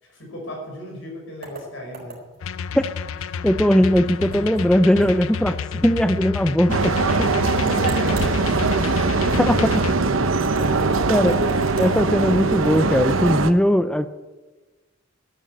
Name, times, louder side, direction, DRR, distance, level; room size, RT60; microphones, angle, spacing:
voice 1, 0.0-2.2 7.6-10.0 10.6-11.3, equal, 70° left, 0 dB, 5.6 m, -36 dB
sound 1, 1.4-2.5 4.3-4.7 5.0-5.1 5.5-5.6 7.6-8.4 10.4-11.9, right 1 dB, 50° right, 4.0 m, -38 dB
sound 2, 2.4-9.9, left 6 dB, 90° left, 0.4 m, -30 dB
voice 2, 3.4-7.0 9.4-9.6 11.1-11.3 11.8-14.1, equal, 5° left, 10 dB, 0.4 m, -19 dB
sound 3, 6.7-13.5, right 3 dB, 85° right, 0.9 m, -21 dB
12.0 x 9.1 x 9.4 m, 1.2 s
head